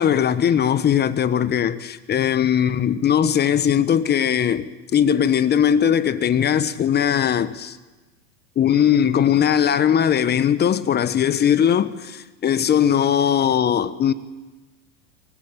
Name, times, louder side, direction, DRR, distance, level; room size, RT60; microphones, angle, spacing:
voice 1, 0.0-7.8 8.6-14.1, left 9 dB, 25° left, 1.3 m, -19 dB
23.5 x 19.5 x 8.8 m
hypercardioid pair, 110°, 38 cm